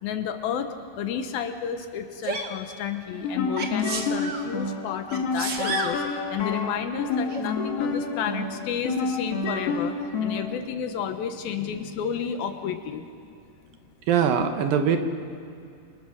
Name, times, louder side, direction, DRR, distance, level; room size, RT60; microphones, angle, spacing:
voice 1, 0.0-10.0 10.2-13.4, left 8 dB, 75° left, 7 dB, 2.7 m, -31 dB
Sneeze, 2.2-2.5 3.6-4.4 5.1-6.0 7.3-7.4, right 4 dB, 50° right, 1.5 m, -31 dB
sound 1, 3.1-10.6, left 4 dB, 45° left, 2.4 m, -29 dB
voice 2, 14.1-15.0, right 7 dB, 70° right, 7 dB, 2.8 m, -21 dB
28.5 x 24.0 x 6.5 m, 2.5 s
omnidirectional pair, 4.5 m